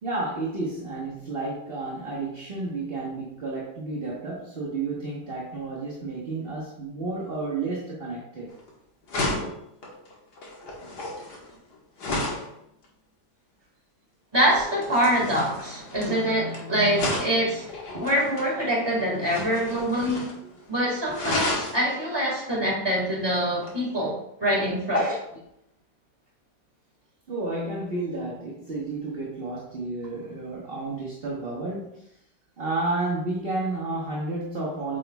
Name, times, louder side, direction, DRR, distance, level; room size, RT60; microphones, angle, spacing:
voice 1, 0.0-8.5 16.1-16.2 17.9-18.1 27.3-32.1 32.6-35.0, right 2 dB, 40° right, -4 dB, 1.2 m, -31 dB
sound 1, 8.5-8.7 9.1-12.5 14.5-16.6 16.9-18.5 19.2-20.4 20.7-20.8 21.1-21.8 23.6-23.8, left 2 dB, 80° left, 1.9 m, -32 dB
voice 2, 14.3-17.7 18.0-20.3 20.7-25.2, equal, 15° right, -4 dB, 1.9 m, -25 dB
8.3 x 5.0 x 2.3 m, 0.77 s
omnidirectional pair, 1.8 m